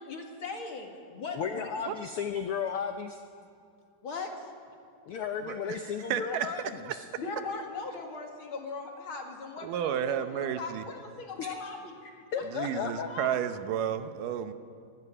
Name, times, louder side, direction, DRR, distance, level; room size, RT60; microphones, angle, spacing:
voice 1, 0.0-1.8 4.0-4.5 7.2-11.9 12.4-13.3, left 4 dB, 45° left, 2 dB, 2.5 m, -39 dB
voice 2, 1.3-3.2 5.1-7.1 11.4-11.5 12.0-13.1, left 7 dB, 85° left, 7 dB, 1.2 m, -34 dB
voice 3, 5.5-5.8 6.1-6.5 6.8-7.0 9.6-10.9 12.5-14.5, right 9 dB, 85° right, 10 dB, 2.5 m, -32 dB
23.5 x 12.0 x 9.8 m, 2.5 s
omnidirectional pair, 3.7 m